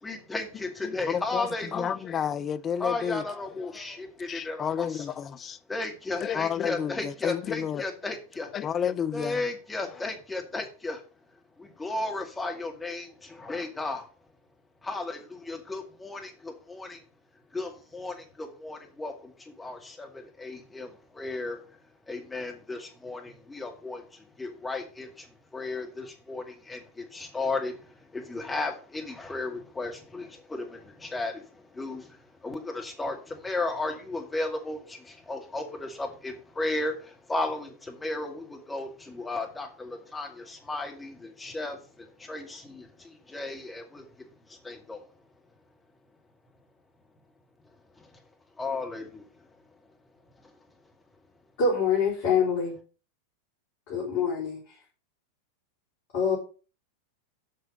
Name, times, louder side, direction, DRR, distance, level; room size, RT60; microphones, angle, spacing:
voice 1, 0.0-1.9 2.8-5.1 5.7-8.5 9.1-11.0 11.6-14.1 14.8-17.0 17.5-21.6 22.1-24.0 24.4-25.3 25.5-27.8 28.1-31.4 31.7-32.1 32.4-41.8 42.2-42.9 43.3-44.0 44.6-45.0 48.6-49.2, left 2 dB, 10° left, 2.1 m, -34 dB
voice 2, 0.8-3.2 3.7-3.8 4.3-5.6 6.2-7.8 8.5-9.4, left 8 dB, 25° left, 0.5 m, -31 dB
voice 3, 51.6-52.8 53.9-54.6 56.1-56.4, left 5 dB, 45° left, 3.9 m, -25 dB
7.8 x 6.1 x 5.3 m
figure-of-eight pair, 90°, 0 cm